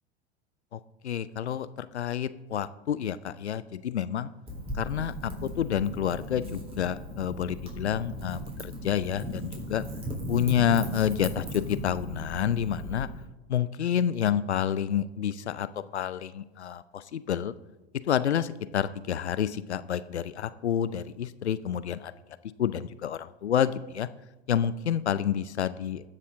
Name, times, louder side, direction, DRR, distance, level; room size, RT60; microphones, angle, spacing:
voice 1, 0.7-4.3 4.7-9.8 10.3-13.1 13.5-15.7 15.9-17.5 18.1-22.1 22.6-24.1 24.5-26.1, left 9 dB, 90° left, 15 dB, 0.6 m, -29 dB
Wind / Fire, 4.5-13.0, equal, 20° right, 3.6 m, -37 dB
19.0 x 6.7 x 3.7 m, 1.1 s
hypercardioid pair, 85°, 32 cm